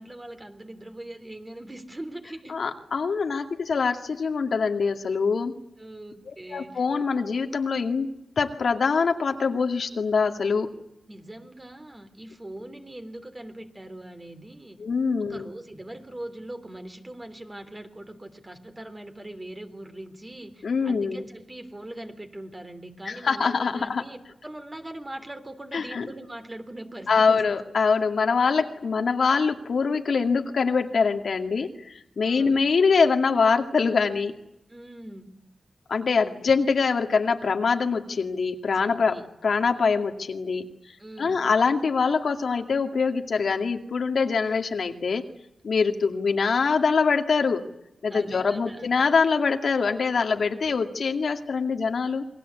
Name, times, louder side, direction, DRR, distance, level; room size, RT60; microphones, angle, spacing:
voice 1, 0.0-2.6 5.8-6.8 11.1-14.8 15.2-27.5 32.2-32.7 34.7-35.3 38.7-39.3 41.0-41.5 44.4-44.5 48.1-48.9, right 1 dB, 20° right, 7 dB, 3.3 m, -41 dB
voice 2, 2.5-5.6 6.3-10.7 14.8-15.5 20.6-21.2 23.1-24.0 25.7-26.1 27.1-34.4 35.9-39.2 39.4-40.7 41.2-45.3 45.6-47.6 48.0-52.2, left 5 dB, 65° left, 4 dB, 2.3 m, -24 dB
28.5 x 22.5 x 8.3 m, 0.85 s
wide cardioid pair, 115°, 0 cm